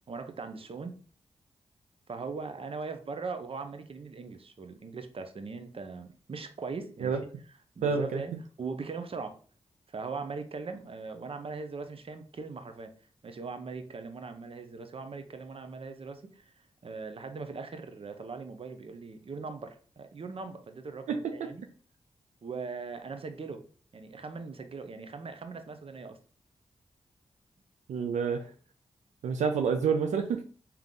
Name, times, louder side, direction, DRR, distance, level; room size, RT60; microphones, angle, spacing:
voice 1, 0.1-0.9 2.1-7.2 7.8-8.3 8.6-9.3 9.9-12.9 13.2-16.5 16.8-21.6 22.4-23.6 23.9-26.2, right 4 dB, 50° right, 8 dB, 0.7 m, -40 dB
voice 2, 7.8-8.2 21.1-21.2 27.9-28.5 29.2-30.4, right 6 dB, 90° right, 6 dB, 0.4 m, -28 dB
3.6 x 2.9 x 3.7 m, 0.41 s
cardioid pair, 45°, 12 cm